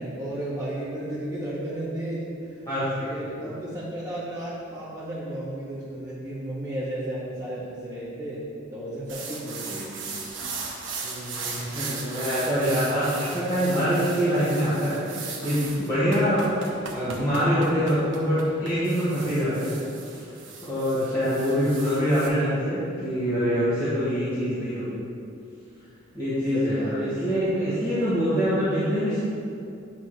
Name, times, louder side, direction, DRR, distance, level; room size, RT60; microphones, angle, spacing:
voice 1, 0.0-2.6 3.0-8.4 8.7-10.2 24.1-25.1 26.5-27.8, right 1 dB, 10° right, -16 dB, 1.9 m, -34 dB
voice 2, 2.7-3.2 3.4-3.5 11.0-19.7 20.1-20.2 20.6-25.0 26.1-29.2, equal, 15° left, -15 dB, 2.0 m, -25 dB
sound 1, 9.1-22.3, right 4 dB, 65° right, 1.2 m, -37 dB
10.5 x 4.2 x 5.0 m, 2.6 s
head